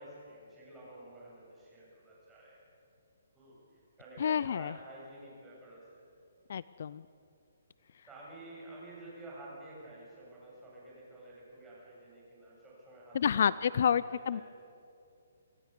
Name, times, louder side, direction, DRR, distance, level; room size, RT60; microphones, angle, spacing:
voice 1, 0.0-2.6 3.3-6.0 8.1-14.4, right 1 dB, 10° right, -6 dB, 7.2 m, -51 dB
voice 2, 4.2-4.7 6.5-7.0 13.1-14.4, left 8 dB, 55° left, 18 dB, 0.4 m, -29 dB
25.5 x 16.0 x 6.8 m, 2.6 s
hypercardioid pair, 160°, 0 cm